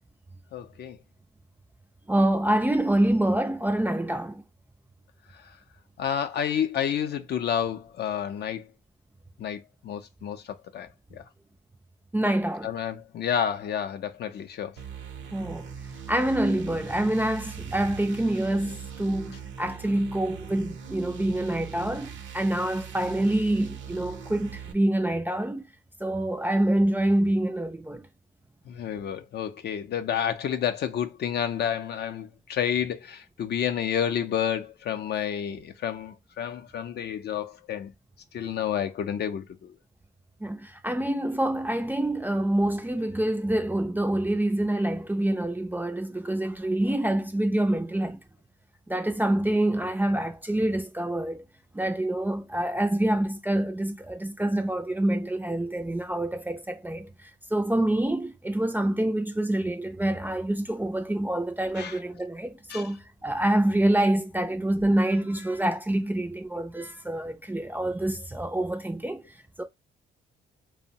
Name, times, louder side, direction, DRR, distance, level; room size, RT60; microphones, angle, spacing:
voice 1, 0.5-1.0 6.0-8.7 9.4-11.2 12.6-14.7 28.7-37.9 38.3-39.7 61.8-62.0 62.7-62.8, left 9 dB, 55° left, 0.4 m, -30 dB
voice 2, 2.1-4.4 12.1-12.7 15.3-15.7 16.1-25.6 26.0-28.0 40.4-48.2 48.9-51.4 51.7-69.2 69.6-69.7, right 1 dB, 10° right, 0.3 m, -26 dB
sound 1, 14.8-24.7, right 7 dB, 70° right, 0.6 m, -41 dB
2.8 x 2.0 x 2.6 m
cardioid pair, 90°, 20 cm